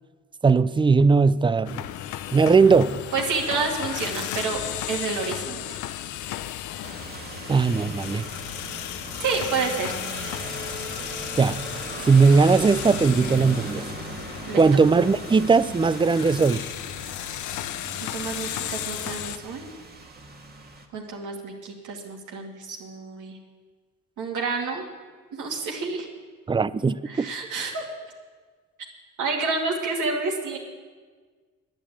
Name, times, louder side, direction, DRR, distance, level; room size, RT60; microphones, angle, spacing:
voice 1, 0.4-1.8 2.3-3.0 7.5-8.3 11.4-11.7 12.0-13.9 14.5-16.7 26.5-27.3, right 4 dB, 15° right, 0.4 m, -19 dB
sound 1, 1.6-19.4, left 12 dB, 75° left, 0.6 m, -35 dB
voice 2, 3.1-4.6 4.9-5.8 9.2-9.9 14.5-14.6 18.0-19.7 20.9-23.4 24.2-24.8 25.3-26.1 27.1-27.8 29.2-30.6, right 4 dB, 80° right, 2.4 m, -29 dB
sound 2, 6.8-20.8, right 3 dB, 30° right, 1.8 m, -38 dB
10.5 x 9.7 x 8.5 m
cardioid pair, 90°, 30 cm